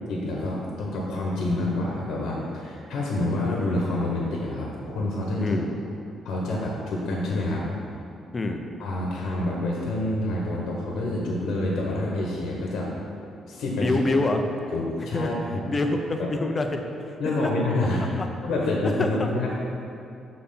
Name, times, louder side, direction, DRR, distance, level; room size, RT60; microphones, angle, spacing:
voice 1, 0.1-5.6 6.2-7.6 8.8-12.9 13.5-14.0 14.7-15.6 17.2-18.0 18.4-19.5, left 2 dB, 75° left, -3 dB, 1.1 m, -27 dB
voice 2, 5.4-5.7 8.3-8.6 13.8-14.4 15.0-15.3 15.7-16.8 17.4-17.5 18.2-18.3 18.8-19.3, left 2 dB, 30° left, 4 dB, 0.7 m, -26 dB
6.7 x 4.1 x 5.6 m, 2.7 s
cardioid pair, 90°, 0 cm